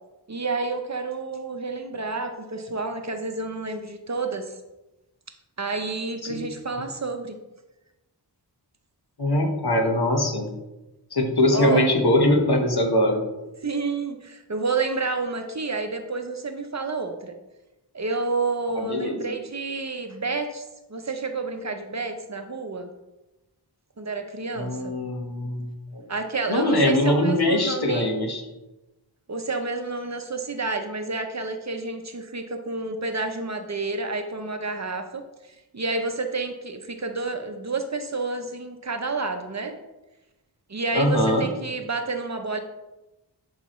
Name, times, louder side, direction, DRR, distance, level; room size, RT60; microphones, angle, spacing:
voice 1, 0.3-4.5 5.6-7.4 11.5-11.9 13.6-17.3 17.9-20.6 20.9-22.9 24.0-25.0 26.1-28.1 29.3-35.2 35.7-39.8 40.7-42.6, right 3 dB, 40° right, 6 dB, 0.7 m, -29 dB
voice 2, 9.2-10.5 11.1-13.2 18.7-19.3 24.5-26.1 26.5-28.4 40.9-41.4, left 1 dB, 60° left, 2 dB, 1.3 m, -22 dB
10.5 x 4.9 x 3.1 m, 1.0 s
wide cardioid pair, 90°, 43 cm